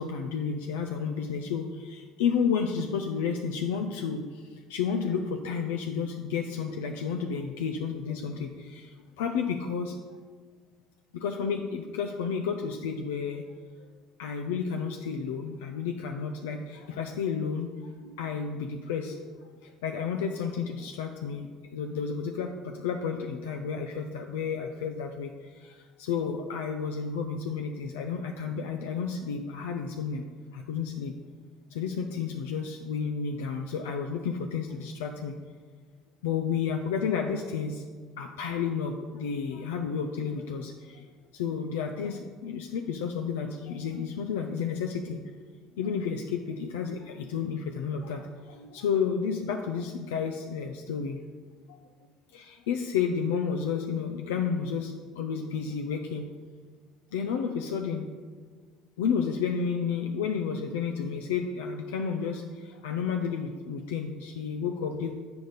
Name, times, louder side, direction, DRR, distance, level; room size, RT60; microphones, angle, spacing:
voice 1, 0.0-10.0 11.1-13.4 13.8-13.9 14.2-19.3 19.6-30.3 30.5-31.1 31.7-35.3 36.2-37.8 38.2-41.1 41.3-45.2 45.8-51.2 51.7-51.8 52.3-56.3 57.1-58.0 59.0-65.1, left 6 dB, 85° left, 4 dB, 0.5 m, -31 dB
7.9 x 6.7 x 3.9 m, 1.5 s
hypercardioid pair, 75°, 0 cm